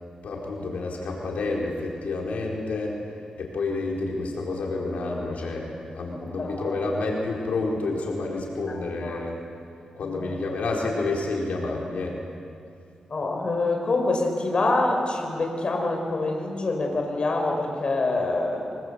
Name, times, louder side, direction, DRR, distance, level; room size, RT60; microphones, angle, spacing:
voice 1, 0.2-3.0 3.4-9.4 10.0-12.2, left 3 dB, 85° left, -2 dB, 4.6 m, -29 dB
voice 2, 6.4-6.7 8.7-8.8 9.0-9.2 10.2-10.4 13.1-18.7, left 2 dB, 45° left, 2 dB, 4.5 m, -26 dB
25.0 x 23.5 x 8.2 m, 2.5 s
wide cardioid pair, 100°, 2 cm